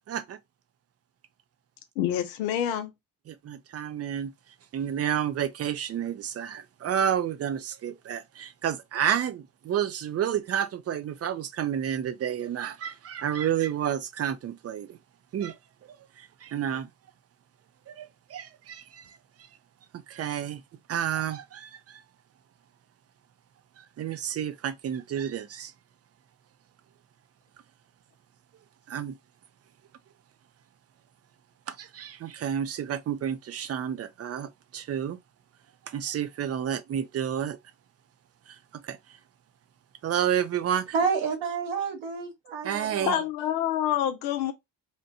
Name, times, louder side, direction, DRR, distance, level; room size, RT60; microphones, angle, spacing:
voice 1, 0.1-0.4 3.3-4.3 4.7-15.0 15.3-15.6 15.9-16.9 17.9-19.2 20.1-20.6 20.9-22.0 23.8-25.7 28.9-29.2 31.7-35.2 35.9-37.6 38.5-38.6 38.8-39.0 40.0-40.9 42.6-43.2, right 9 dB, 30° right, 0.4 m, -30 dB
voice 2, 2.0-2.9 43.1-44.5, left 10 dB, 85° left, 0.6 m, -27 dB
voice 3, 40.9-43.2, right 5 dB, 65° right, 1.1 m, -29 dB
2.9 x 2.2 x 2.7 m
hypercardioid pair, 50°, 49 cm